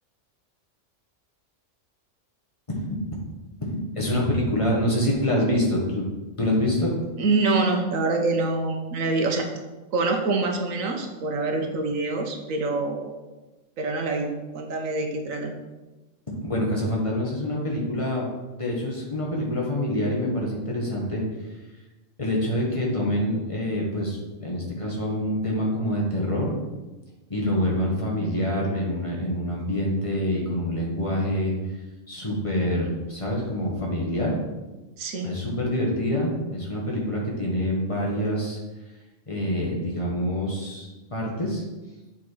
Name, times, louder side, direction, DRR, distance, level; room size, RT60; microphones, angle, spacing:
voice 1, 2.7-3.0 3.6-6.0 6.4-6.9 16.3-18.3 18.6-21.6 22.2-26.6 27.3-31.8 32.1-34.3 35.2-38.6 39.3-41.6, left 1 dB, 25° left, -3 dB, 1.6 m, -26 dB
voice 2, 7.2-9.4 9.9-13.1 13.8-15.5 35.0-35.3, right 3 dB, 85° right, 3 dB, 1.4 m, -25 dB
8.3 x 4.3 x 4.7 m, 1.1 s
omnidirectional pair, 1.4 m